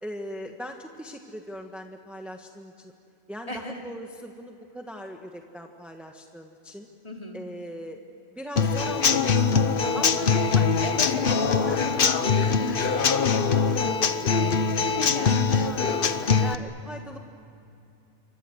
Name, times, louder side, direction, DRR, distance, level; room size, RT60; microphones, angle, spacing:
voice 1, 0.0-2.9 3.3-6.9 7.3-8.0 8.3-10.7 11.1-12.0 12.7-13.0 15.6-15.9 16.2-17.2, equal, ahead, 3 dB, 1.3 m, -40 dB
voice 2, 3.5-3.8 7.0-7.4 10.8-15.7, left 1 dB, 30° left, 1 dB, 3.3 m, -39 dB
Human voice / Acoustic guitar / Drum, 8.6-16.5, left 5 dB, 55° left, 1.1 m, -22 dB
28.5 x 24.5 x 7.9 m, 2.7 s
omnidirectional pair, 1.2 m